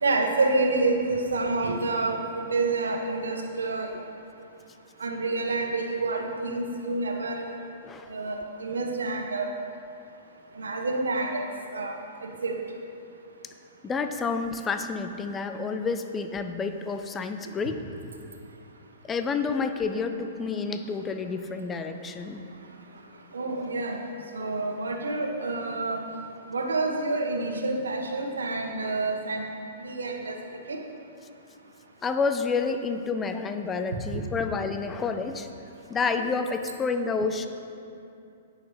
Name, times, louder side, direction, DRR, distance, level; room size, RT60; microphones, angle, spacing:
voice 1, 0.0-3.9 5.0-7.5 8.1-9.5 10.6-11.4 11.7-11.9 12.4-12.6 23.3-24.0 24.3-26.0 26.5-29.4 29.8-30.4 30.7-30.8 34.1-34.2, right 3 dB, 80° right, 2 dB, 1.4 m, -28 dB
voice 2, 13.8-17.8 19.1-22.4 32.0-35.5 35.9-37.5, left 4 dB, 15° left, 7 dB, 0.6 m, -29 dB
17.0 x 6.5 x 3.3 m, 2.6 s
hypercardioid pair, 115°, 0 cm